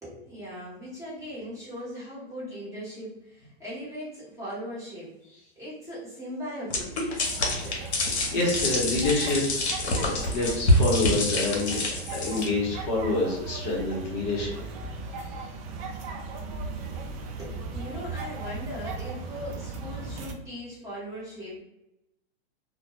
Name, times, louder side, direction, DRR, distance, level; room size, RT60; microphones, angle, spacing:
voice 1, 0.0-5.1 5.6-6.9 7.6-7.8 17.4-21.6, equal, 10° right, -9 dB, 1.0 m, -39 dB
sound 1, 6.7-12.5, left 1 dB, 85° left, 0.8 m, -26 dB
sound 2, 7.2-20.3, right 3 dB, 35° right, 0.4 m, -37 dB
voice 2, 8.3-11.8 12.1-14.6 15.3-15.4, left 2 dB, 40° left, -4 dB, 0.8 m, -27 dB
2.2 x 2.1 x 2.9 m, 0.88 s
hypercardioid pair, 135°, 33 cm